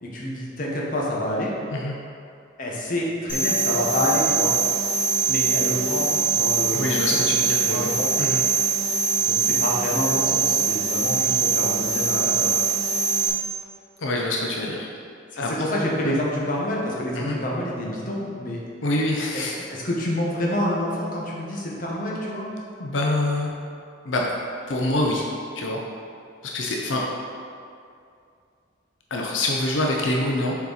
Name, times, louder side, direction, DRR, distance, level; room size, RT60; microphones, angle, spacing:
voice 1, 0.0-1.5 2.6-4.5 5.3-7.2 7.6-8.1 9.2-12.6 15.3-18.6 19.3-19.4 19.7-22.5, left 1 dB, 45° left, -4 dB, 1.1 m, -27 dB
sound 1, 3.3-13.3, right 5 dB, 25° left, 1.5 m, -23 dB
voice 2, 6.7-7.9 8.2-8.4 14.0-14.9 15.4-15.5 16.0-16.2 17.2-17.4 18.8-19.7 22.8-23.5 24.0-24.3 24.7-25.2 25.6-25.8 26.5-27.0 29.1-30.5, left 1 dB, 90° left, -1 dB, 0.7 m, -25 dB
6.9 x 4.5 x 4.1 m, 2.4 s
head